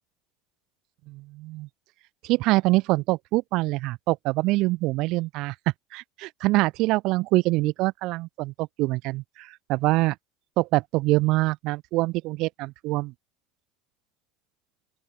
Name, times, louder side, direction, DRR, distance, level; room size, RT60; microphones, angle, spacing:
voice 1, 1.1-1.7 2.2-5.5 5.9-10.1 10.6-13.1, right 20 dB, 55° right, 7.7 m, -25 dB
open air
figure-of-eight pair, 70°, 0 cm